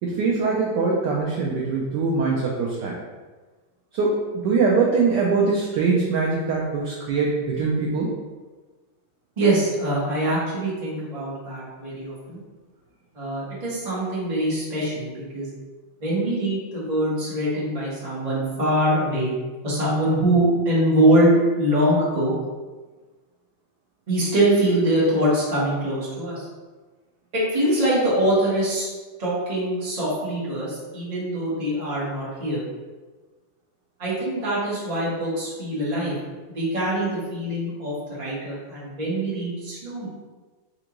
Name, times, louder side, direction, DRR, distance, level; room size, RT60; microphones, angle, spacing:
voice 1, 0.0-3.0 3.9-8.1, right 4 dB, 80° right, -3 dB, 0.9 m, -22 dB
voice 2, 9.4-12.4 13.1-15.5 16.0-19.3 19.6-22.3 24.1-26.5 27.3-28.8 29.2-32.6 34.0-36.1 36.5-40.1, right 1 dB, 25° right, -8 dB, 0.8 m, -23 dB
4.3 x 2.5 x 2.9 m, 1.3 s
omnidirectional pair, 2.3 m